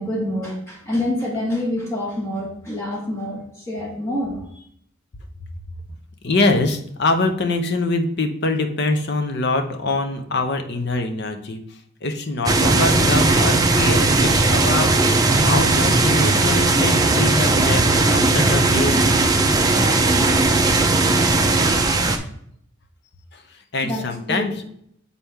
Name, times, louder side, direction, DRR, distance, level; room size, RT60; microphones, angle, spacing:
voice 1, 0.0-4.6 23.8-24.6, left 1 dB, 15° left, -4 dB, 1.5 m, -27 dB
voice 2, 6.2-19.0 23.3-24.5, left 2 dB, 55° left, 6 dB, 0.7 m, -24 dB
sound 1, 12.5-22.2, right 2 dB, 20° right, 0.5 m, -17 dB
7.2 x 4.2 x 3.5 m, 0.68 s
head